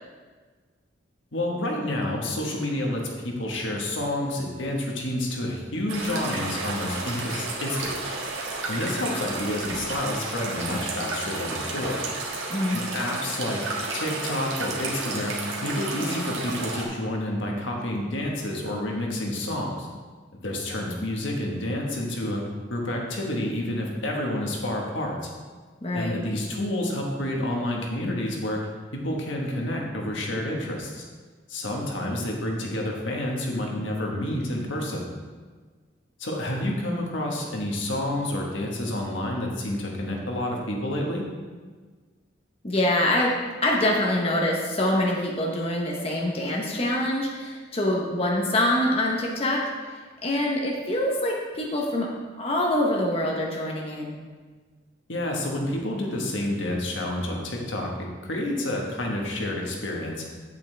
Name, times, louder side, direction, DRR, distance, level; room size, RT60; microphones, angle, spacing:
voice 1, 1.3-8.0 8.7-12.1 12.7-13.6 13.9-15.4 15.6-19.9 20.4-22.4 22.7-25.3 25.9-28.6 28.9-31.0 31.5-35.1 36.2-41.2 55.1-60.2, left 1 dB, 85° left, 0 dB, 1.5 m, -29 dB
sound 1, 5.9-16.9, right 3 dB, 85° right, 1.6 m, -32 dB
voice 2, 12.5-12.8 25.8-26.2 42.6-43.3 43.6-49.6 50.2-52.1 52.4-54.2, left 1 dB, 30° left, -2 dB, 1.0 m, -25 dB
8.3 x 8.1 x 3.4 m, 1.5 s
head